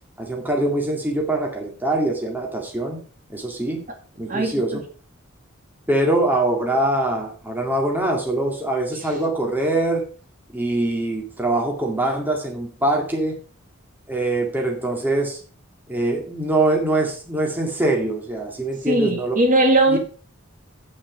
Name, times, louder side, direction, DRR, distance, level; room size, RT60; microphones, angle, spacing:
voice 1, 0.2-3.0 3.3-3.8 4.2-4.8 5.9-10.0 10.5-13.4 14.1-15.4 15.9-19.4 19.9-20.0, right 2 dB, 10° right, 1 dB, 2.1 m, -23 dB
voice 2, 4.3-4.6 18.9-20.0, right 1 dB, 40° right, 4 dB, 2.2 m, -18 dB
9.0 x 8.8 x 5.1 m, 0.39 s
head